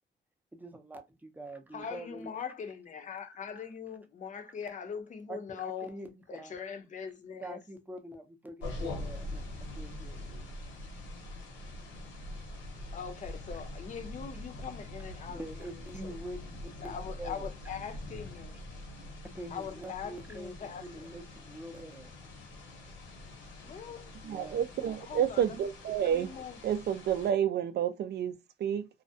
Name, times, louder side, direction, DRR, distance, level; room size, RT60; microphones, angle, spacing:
voice 1, 0.5-2.3 3.3-3.4 5.3-6.6 7.4-10.3 15.3-17.5 19.2-22.1 24.2-24.6, right 1 dB, 10° right, 0.5 m, -45 dB
voice 2, 1.7-5.9 6.3-7.6 12.9-15.4 16.0-16.2 16.8-18.6 19.5-21.1 23.6-24.1 24.8-25.6 26.0-26.6, left 7 dB, 40° left, 0.6 m, -41 dB
sound 1, 8.6-27.3, left 1 dB, 75° left, 0.9 m, -44 dB
voice 3, 24.2-26.4 26.6-28.9, right 9 dB, 55° right, 0.4 m, -30 dB
2.3 x 2.0 x 2.6 m
cardioid pair, 90°, 20 cm